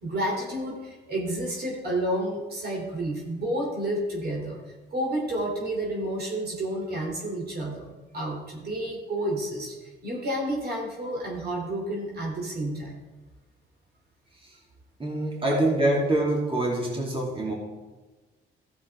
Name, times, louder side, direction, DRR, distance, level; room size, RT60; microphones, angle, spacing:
voice 1, 0.0-4.6 4.9-7.9 8.1-12.9 15.2-15.6 15.9-16.0, right 1 dB, 55° right, 0 dB, 2.8 m, -30 dB
voice 2, 15.0-17.5, right 1 dB, 25° right, -3 dB, 2.8 m, -25 dB
13.5 x 7.3 x 3.5 m, 1.2 s
cardioid pair, 90°, 20 cm